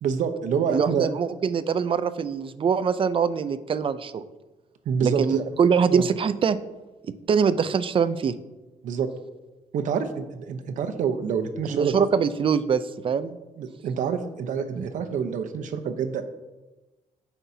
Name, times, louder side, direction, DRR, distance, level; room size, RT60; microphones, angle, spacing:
voice 1, 0.0-1.1 4.9-5.4 5.9-6.0 8.8-9.1 9.7-12.0 13.6-16.2, right 6 dB, 80° right, 8 dB, 0.9 m, -27 dB
voice 2, 0.7-4.2 5.0-6.6 7.1-8.3 11.7-13.4 14.8-14.9, right 6 dB, 45° right, 13 dB, 0.5 m, -23 dB
15.0 x 5.7 x 2.8 m, 1.1 s
cardioid pair, 110°, 13 cm